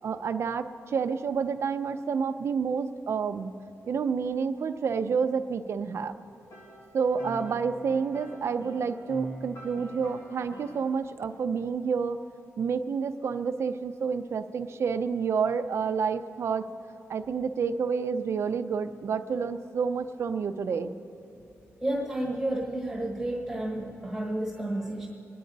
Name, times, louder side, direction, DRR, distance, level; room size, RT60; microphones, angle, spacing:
voice 1, 0.0-3.5 3.9-6.1 6.9-12.2 12.6-16.7 17.1-20.9, right 6 dB, 55° right, 8 dB, 0.6 m, -29 dB
sound 1, 6.3-10.9, right 1 dB, 65° left, 1.8 m, -43 dB
voice 2, 21.8-25.1, right 1 dB, 5° right, -3 dB, 1.3 m, -31 dB
25.5 x 10.5 x 4.0 m, 2.8 s
wide cardioid pair, 175°, 5 cm